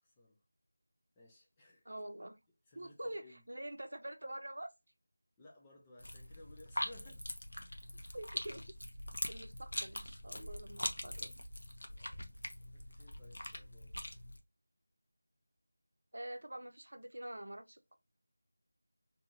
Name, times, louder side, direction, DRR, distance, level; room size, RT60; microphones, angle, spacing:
voice 1, 0.0-0.4 1.2-1.9 2.7-3.4 5.4-7.2 8.0-8.2 11.9-14.2, left 2 dB, 10° left, 0.3 m, -60 dB
voice 2, 1.9-2.4 2.8-4.7 8.1-8.6 9.3-11.4 16.1-18.0, right 1 dB, 75° right, 0.6 m, -46 dB
sound 1, 6.0-14.4, left 1 dB, 85° left, 0.7 m, -43 dB
2.6 x 2.4 x 2.9 m
figure-of-eight pair, 180°, 0 cm